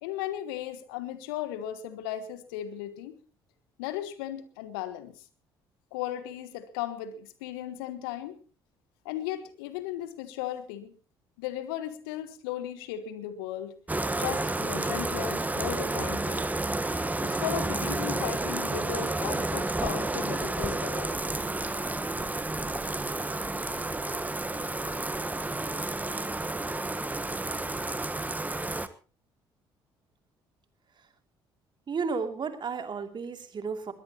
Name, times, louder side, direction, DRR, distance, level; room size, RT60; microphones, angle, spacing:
voice 1, 0.0-3.2 3.8-5.1 5.9-8.4 9.0-10.9 11.4-13.7 14.2-16.5 17.2-21.2, left 11 dB, 75° left, 13 dB, 1.5 m, -36 dB
Bathtub (filling or washing), 13.9-28.9, right 2 dB, 15° right, 1.3 m, -31 dB
voice 2, 31.9-33.9, right 5 dB, 40° right, 7 dB, 2.7 m, -33 dB
21.5 x 18.0 x 3.0 m, 0.37 s
figure-of-eight pair, 50°, 12 cm